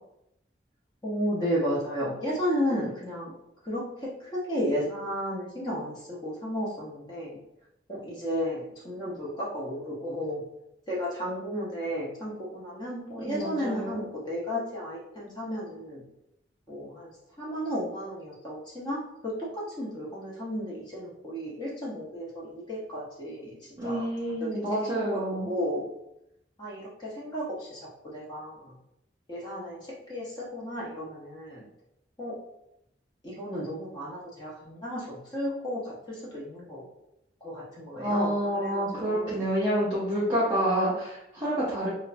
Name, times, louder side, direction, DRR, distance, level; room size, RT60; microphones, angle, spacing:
voice 1, 1.0-3.3 3.6-7.4 7.9-10.4 10.9-16.0 16.7-17.1 17.4-24.1 24.4-24.5 24.9-25.2 25.5-25.8 26.6-27.8 28.1-28.7 29.3-31.6 32.2-32.4 33.2-36.8 37.4-38.3 38.6-39.5, equal, 25° left, -6 dB, 0.7 m, -33 dB
voice 2, 13.2-14.1 23.8-25.5 38.0-41.9, right 1 dB, 25° right, -8 dB, 0.5 m, -28 dB
3.1 x 2.1 x 2.4 m, 0.82 s
head